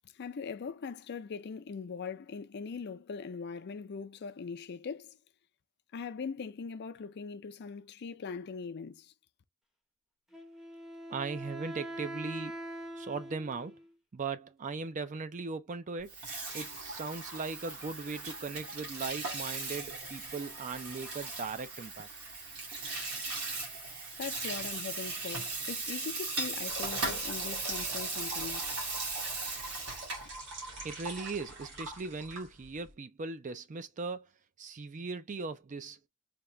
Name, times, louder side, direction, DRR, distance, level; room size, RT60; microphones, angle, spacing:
voice 1, 0.1-5.2 5.9-9.1 24.2-28.7, left 5 dB, 50° left, 0.4 m, -41 dB
Wind instrument woodwind instrument, 10.3-13.9, right 1 dB, ahead, 0.7 m, -43 dB
voice 2, 11.1-12.6 13.0-13.8 14.1-16.2 16.5-22.1 30.8-34.3 34.6-36.0, right 4 dB, 35° right, 0.4 m, -38 dB
Water tap faucet / Sink (filling or washing), 16.0-30.3, right 3 dB, 80° right, 1.8 m, -38 dB
sound 1, 26.7-32.9, right 2 dB, 55° right, 2.2 m, -43 dB
3.7 x 2.9 x 3.1 m
head